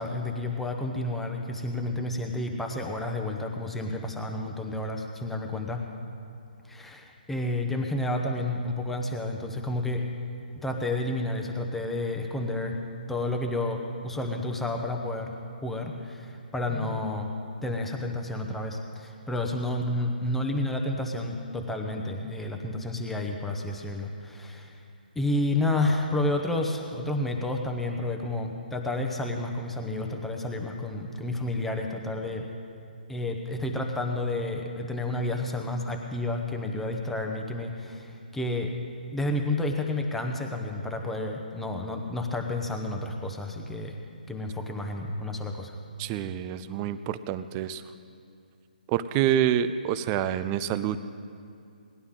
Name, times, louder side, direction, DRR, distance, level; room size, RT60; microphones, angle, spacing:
voice 1, 0.0-5.8 6.7-10.1 10.6-12.8 13.1-15.3 15.6-17.3 17.6-24.8 25.1-32.5 33.1-38.7 39.1-44.0 44.3-45.7, left 2 dB, 5° left, 2 dB, 0.8 m, -30 dB
voice 2, 46.0-47.8 48.9-51.0, right 10 dB, 20° right, 13 dB, 0.4 m, -27 dB
19.0 x 11.5 x 3.7 m, 2.4 s
hypercardioid pair, 155°, 5 cm